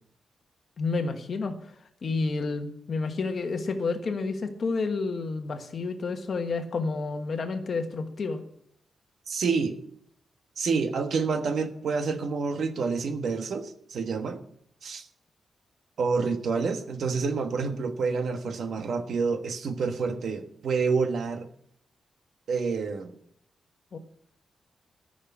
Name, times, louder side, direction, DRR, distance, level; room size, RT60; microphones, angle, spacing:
voice 1, 0.8-1.7 2.0-8.4 23.9-24.0, left 4 dB, 45° left, 6 dB, 1.4 m, -30 dB
voice 2, 9.3-9.8 10.6-14.4 14.8-15.1 16.0-21.5 22.5-23.1, right 4 dB, 65° right, 7 dB, 1.3 m, -28 dB
14.0 x 6.6 x 8.3 m, 0.71 s
wide cardioid pair, 155°, 0 cm